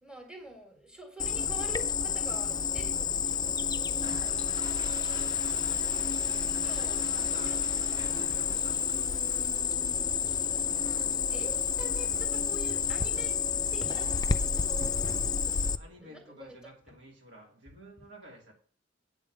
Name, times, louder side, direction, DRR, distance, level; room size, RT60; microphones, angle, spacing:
voice 1, 0.0-3.8 6.5-7.6 11.3-13.4 13.7-16.6, right 1 dB, 5° right, 3 dB, 1.7 m, -47 dB
Cricket, 1.2-15.8, left 7 dB, 20° left, 0.4 m, -30 dB
Toilet flush, 3.9-15.3, right 1 dB, 25° right, 1.1 m, -50 dB
voice 2, 4.2-5.0 6.8-9.3 15.5-18.5, equal, 75° right, 0 dB, 3.0 m, -51 dB
8.1 x 5.5 x 7.6 m, 0.43 s
head